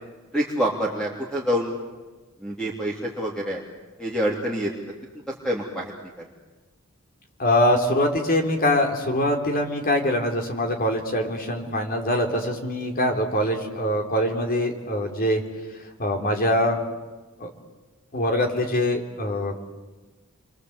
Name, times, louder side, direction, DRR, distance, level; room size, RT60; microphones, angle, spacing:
voice 1, 0.3-1.7 2.4-3.6 4.0-4.7 5.4-5.9, equal, 5° left, -3 dB, 3.2 m, -26 dB
voice 2, 7.4-15.4 16.0-16.8 17.4-17.5 18.1-19.8, left 1 dB, 40° left, 3 dB, 3.8 m, -23 dB
29.5 x 24.5 x 8.2 m, 1.2 s
head